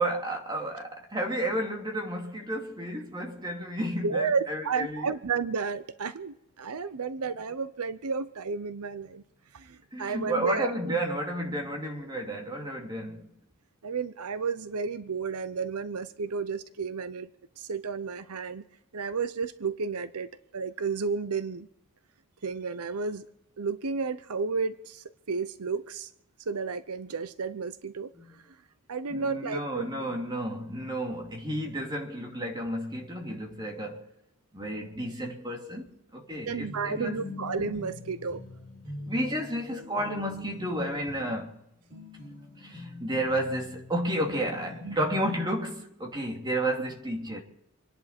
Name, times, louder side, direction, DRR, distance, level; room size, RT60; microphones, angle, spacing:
voice 1, 0.0-5.2 9.9-13.3 28.2-28.3 29.1-34.1 34.5-37.2 39.0-41.5 42.6-47.4, right 1 dB, 20° right, 2.8 m, -32 dB
voice 2, 4.0-9.2 9.5-10.7 13.8-17.3 17.6-18.6 18.9-20.3 20.5-21.7 22.4-23.2 23.6-26.1 26.5-28.1 28.9-29.9 36.5-38.4 44.8-45.0, right 5 dB, 85° right, 0.7 m, -32 dB
sound 1, 36.6-45.5, left 2 dB, 50° right, 6.7 m, -44 dB
27.0 x 11.0 x 4.4 m
head